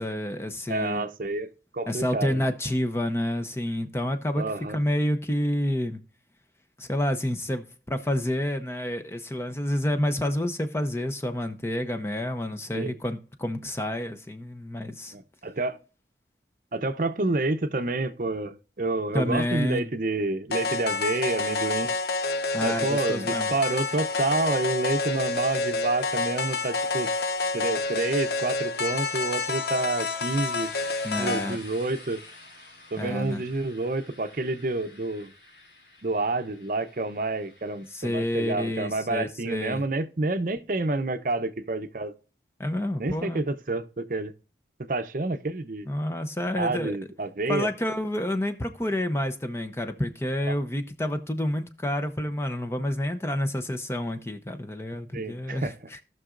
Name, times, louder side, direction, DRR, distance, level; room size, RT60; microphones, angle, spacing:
voice 1, 0.0-1.1 1.9-6.0 6.8-15.1 19.1-19.9 22.5-23.5 31.0-31.6 33.0-33.4 37.9-39.8 42.6-43.4 45.9-47.0 47.5-56.0, left 1 dB, 15° left, 0.6 m, -29 dB
voice 2, 0.7-2.5 4.3-4.8 12.7-12.9 15.1-15.8 16.7-21.9 22.6-27.1 27.5-30.7 31.2-32.2 32.9-35.3 36.0-42.1 43.0-44.3 44.9-45.9 46.6-47.7 50.5-50.6 55.1-55.8, right 2 dB, 50° right, 0.7 m, -29 dB
sound 1, 20.5-31.5, left 3 dB, 65° left, 0.7 m, -28 dB
sound 2, 26.0-38.8, left 2 dB, 85° left, 3.7 m, -51 dB
17.5 x 6.1 x 2.5 m
head